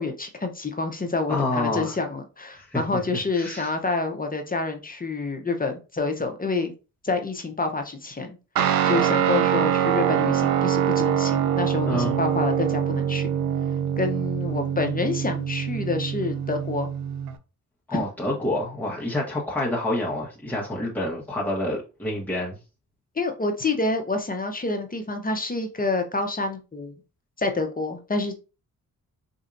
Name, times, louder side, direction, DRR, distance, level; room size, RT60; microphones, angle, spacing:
voice 1, 0.0-6.7 7.0-8.4 8.8-13.3 14.0-16.9 17.9-18.0 23.2-26.9 27.4-28.4, left 3 dB, 25° left, 0.8 m, -28 dB
voice 2, 1.3-1.9 2.5-3.0 3.3-3.7 11.8-12.2 17.9-22.6, left 1 dB, 5° left, 1.1 m, -28 dB
Guitar, 8.6-17.4, right 9 dB, 90° right, 0.5 m, -24 dB
4.3 x 2.7 x 2.5 m
cardioid pair, 70°, 34 cm